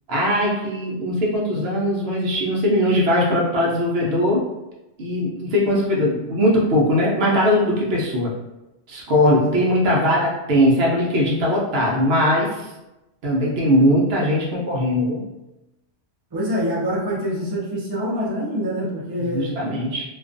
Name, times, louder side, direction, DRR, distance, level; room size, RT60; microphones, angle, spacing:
voice 1, 0.1-4.4 5.0-8.3 8.9-12.7 13.2-15.2 19.3-20.0, equal, 65° right, -3 dB, 0.7 m, -20 dB
voice 2, 9.3-9.6 16.3-19.6, equal, 35° right, -5 dB, 0.3 m, -25 dB
2.3 x 2.3 x 2.4 m, 0.97 s
omnidirectional pair, 1.3 m